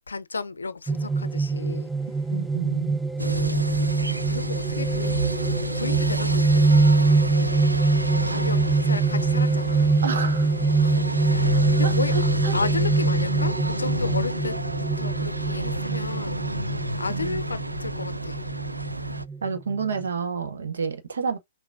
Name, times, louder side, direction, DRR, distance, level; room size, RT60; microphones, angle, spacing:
voice 1, 0.1-1.9 3.2-3.7 4.0-5.2 5.7-7.0 7.3-7.6 8.3-10.0 10.8-11.0 11.3-14.6 15.0-16.4 17.0-18.4, left 4 dB, 80° left, 0.5 m, -33 dB
sound 1, 0.9-20.0, right 3 dB, 5° right, 0.3 m, -24 dB
voice 2, 2.3-3.0 8.3-8.4 10.0-10.5 11.8-11.9 12.4-12.5 17.1-17.4 19.4-21.4, right 6 dB, 70° right, 1.0 m, -29 dB
sound 2, 3.2-19.2, right 1 dB, 90° right, 0.3 m, -29 dB
5.9 x 2.2 x 2.5 m
figure-of-eight pair, 110°, 0 cm